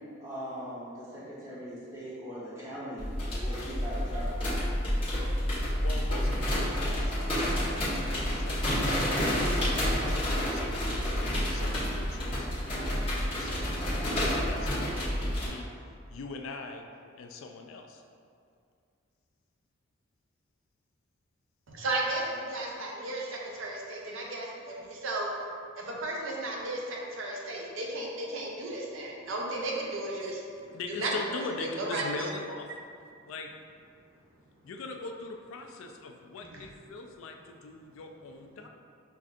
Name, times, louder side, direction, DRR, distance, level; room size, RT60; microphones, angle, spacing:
voice 1, 0.2-4.4, equal, 15° right, -11 dB, 1.0 m, -40 dB
sound 1, 3.0-15.5, equal, 25° left, 1.0 m, -29 dB
voice 2, 5.8-9.7 10.0-13.8 14.3-15.7 16.1-16.9 17.1-18.0 30.7-32.7 33.3-33.5 34.6-38.7, left 3 dB, 80° left, 4 dB, 0.3 m, -42 dB
voice 3, 21.7-25.3 25.8-32.2 36.5-36.6, right 2 dB, 75° right, -2 dB, 0.6 m, -34 dB
5.7 x 2.5 x 2.4 m, 2.4 s
head